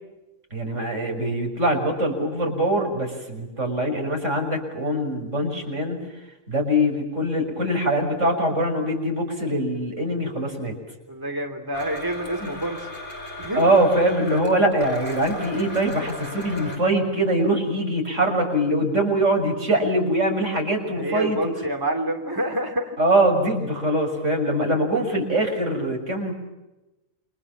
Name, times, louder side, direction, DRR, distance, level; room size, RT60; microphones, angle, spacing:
voice 1, 0.5-6.0 6.5-10.8 12.4-12.5 13.5-21.5 23.0-26.3, right 1 dB, 65° right, 3 dB, 6.9 m, -23 dB
voice 2, 11.1-12.9 13.4-13.8 20.9-23.0, right 1 dB, 15° right, 4 dB, 3.3 m, -28 dB
Domestic sounds home sounds, 11.7-16.8, left 1 dB, 40° left, 5.9 m, -37 dB
29.5 x 26.5 x 7.5 m, 1.0 s
omnidirectional pair, 1.3 m